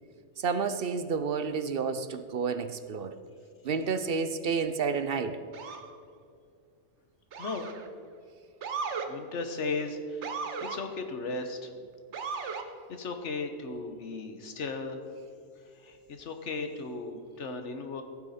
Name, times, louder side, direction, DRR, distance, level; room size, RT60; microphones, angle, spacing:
voice 1, 0.4-3.1 3.6-5.4, right 5 dB, 60° right, 11 dB, 0.7 m, -30 dB
Motor vehicle (road) / Siren, 5.5-5.9 7.3-7.9 8.6-9.1 10.2-10.8 12.1-12.7, right 5 dB, 75° right, 1.2 m, -36 dB
voice 2, 7.4-7.7 9.1-10.3 10.6-11.7 12.3-12.6 12.9-15.0 15.7-18.0, left 3 dB, 80° left, 6 dB, 1.4 m, -36 dB
15.5 x 8.9 x 4.2 m, 2.3 s
omnidirectional pair, 1.2 m